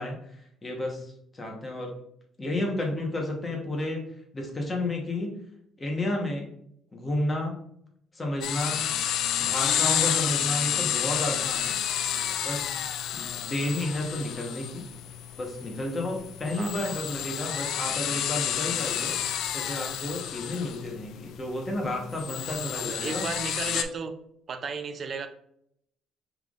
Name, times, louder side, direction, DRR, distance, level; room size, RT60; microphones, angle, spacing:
voice 1, 0.0-1.9 2.4-4.0 4.3-5.3 5.8-6.5 6.9-7.6 8.1-8.8 9.4-11.8 12.4-12.7 13.1-14.9 15.4-19.1 19.5-23.3, left 1 dB, 20° left, 0 dB, 1.0 m, -31 dB
sound 1, 8.4-23.8, left 10 dB, 65° left, 0.3 m, -30 dB
voice 2, 12.1-12.4 16.6-16.8 22.7-24.1 24.5-25.3, right 5 dB, 35° right, 8 dB, 0.4 m, -35 dB
5.6 x 3.4 x 2.4 m, 0.71 s
cardioid pair, 155°, 0 cm